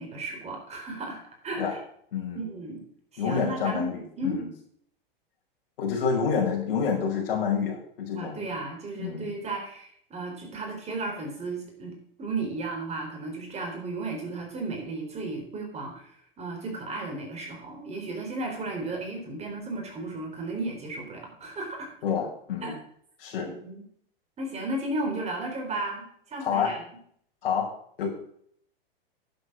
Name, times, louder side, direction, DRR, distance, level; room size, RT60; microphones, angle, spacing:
voice 1, 0.0-1.8 2.3-2.8 3.1-4.4 8.2-21.9 22.6-22.7 23.4-23.8 24.4-26.8, right 2 dB, 20° right, 1 dB, 4.1 m, -34 dB
voice 2, 3.2-4.5 5.8-8.6 9.0-9.3 22.0-22.8 23.2-23.5 26.4-26.7 27.4-27.7 28.0-28.1, left 6 dB, 65° left, -1 dB, 5.6 m, -28 dB
11.0 x 8.0 x 6.3 m, 0.64 s
hypercardioid pair, 115°, 30 cm